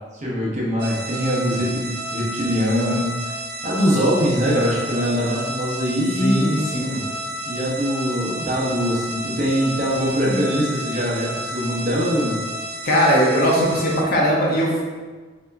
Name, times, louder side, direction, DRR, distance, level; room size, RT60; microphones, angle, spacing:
voice 1, 0.2-3.2 3.6-6.6 7.5-12.4, equal, 40° right, -4 dB, 0.9 m, -22 dB
sound 1, 0.8-14.0, right 1 dB, 55° right, 0.5 m, -31 dB
voice 2, 6.2-7.0 12.8-14.8, equal, 50° left, -3 dB, 0.8 m, -19 dB
4.5 x 2.8 x 2.6 m, 1.4 s
head